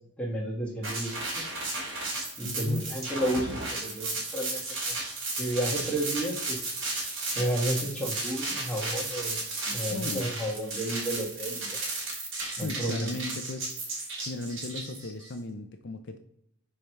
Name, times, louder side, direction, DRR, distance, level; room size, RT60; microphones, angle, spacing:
voice 1, 0.2-1.4 2.4-3.5 3.8-4.6 4.9-5.0 5.4-6.6 7.3-9.4 9.7-11.8 12.6-13.1, right 1 dB, 5° left, -3 dB, 1.4 m, -31 dB
sound 1, 0.8-15.3, right 2 dB, 55° right, 2.6 m, -34 dB
voice 2, 2.4-2.9 9.9-10.3 12.5-13.8 14.3-16.2, left 2 dB, 50° left, 7 dB, 0.5 m, -36 dB
5.1 x 4.6 x 5.6 m, 0.77 s
head